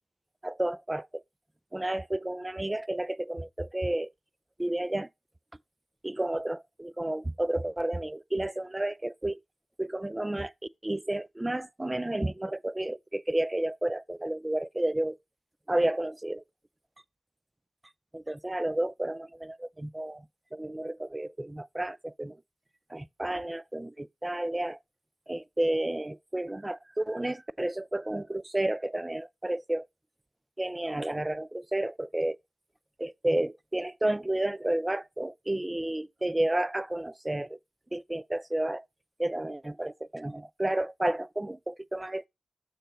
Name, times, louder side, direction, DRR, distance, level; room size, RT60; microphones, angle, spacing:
voice 1, 0.4-1.2 1.7-4.1 4.6-5.1 6.0-9.4 9.8-10.5 10.8-15.2 15.7-16.4 18.1-20.3 20.5-22.4 22.9-24.8 25.3-29.9 30.6-32.4 33.0-37.6 37.9-38.8 39.2-42.3, right 1 dB, 20° right, 0.4 m, -31 dB
6.6 x 4.0 x 5.1 m
cardioid pair, 40°, 0 cm